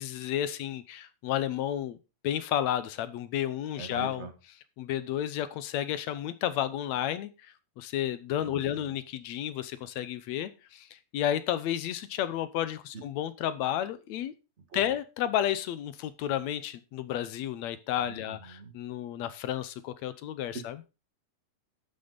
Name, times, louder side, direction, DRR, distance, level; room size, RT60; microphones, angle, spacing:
voice 1, 0.0-2.0 2.2-4.3 4.8-7.3 7.8-10.9 11.1-14.3 14.7-20.8, left 11 dB, 70° left, 14 dB, 1.9 m, -32 dB
voice 2, 3.8-4.3 8.4-8.9 12.9-13.0 14.7-14.9 18.0-18.7 20.5-20.6, right 4 dB, 30° right, 6 dB, 1.5 m, -43 dB
11.5 x 9.1 x 4.0 m, 0.28 s
omnidirectional pair, 3.6 m